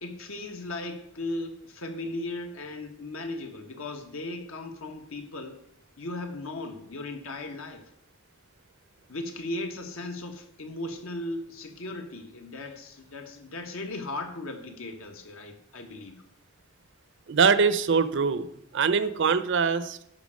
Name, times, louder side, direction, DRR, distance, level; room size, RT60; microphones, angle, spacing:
voice 1, 0.0-5.6 6.0-7.8 9.1-16.2, left 2 dB, 70° left, 5 dB, 1.4 m, -37 dB
voice 2, 17.3-18.5 18.7-20.0, right 5 dB, 55° right, 13 dB, 0.6 m, -23 dB
10.5 x 5.6 x 6.3 m, 0.73 s
head